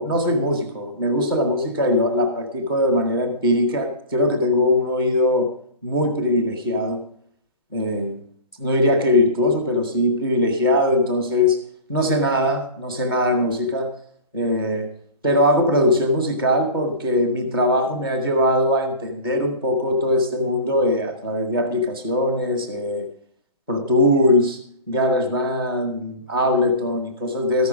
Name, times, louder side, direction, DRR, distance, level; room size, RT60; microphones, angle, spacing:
voice 1, 0.0-5.5 5.8-7.0 7.7-8.2 8.6-11.6 11.9-13.9 14.3-14.9 15.2-23.1 23.7-24.6 24.9-27.7, left 1 dB, 5° left, 5 dB, 0.4 m, -21 dB
13.5 x 6.1 x 6.0 m, 0.66 s
hypercardioid pair, 180°, 21 cm